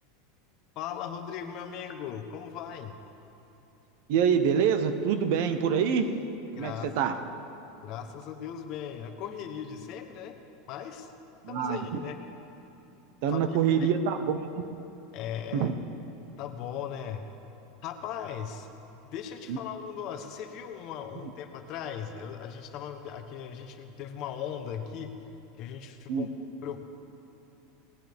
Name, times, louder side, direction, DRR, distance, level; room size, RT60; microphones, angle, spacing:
voice 1, 0.7-3.0 6.5-6.9 7.8-10.4 10.7-11.1 11.5-12.2 13.3-13.9 15.1-15.7 16.4-17.2 17.8-18.7 19.1-25.2 25.6-26.3 26.6-26.8, left 8 dB, 40° left, 7 dB, 1.0 m, -38 dB
voice 2, 4.1-6.2 6.6-7.2 11.4-12.0 13.2-14.7 15.5-15.7 19.5-19.6 26.1-26.3, right 7 dB, 55° right, 9 dB, 0.9 m, -26 dB
19.0 x 18.5 x 3.6 m, 2.9 s
supercardioid pair, 170°, 0 cm